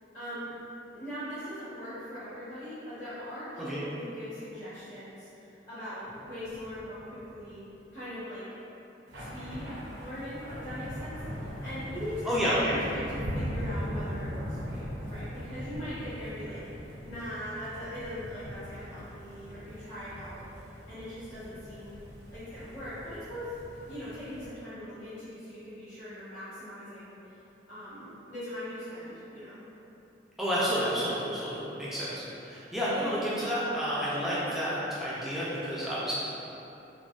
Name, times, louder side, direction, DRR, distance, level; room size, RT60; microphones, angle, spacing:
voice 1, 0.1-0.5 0.9-7.6 7.9-8.5 9.2-12.3 12.6-16.6 17.0-20.4 20.9-22.0 22.3-23.5 23.9-27.4 27.7-29.6, equal, 70° left, -17 dB, 1.2 m, -41 dB
sound 1, 6.0-7.7 9.1-24.5, equal, 90° right, 0.6 m, -40 dB
voice 2, 12.3-12.9 30.4-36.1, equal, ahead, -10 dB, 0.4 m, -30 dB
3.7 x 2.1 x 2.4 m, 2.9 s
head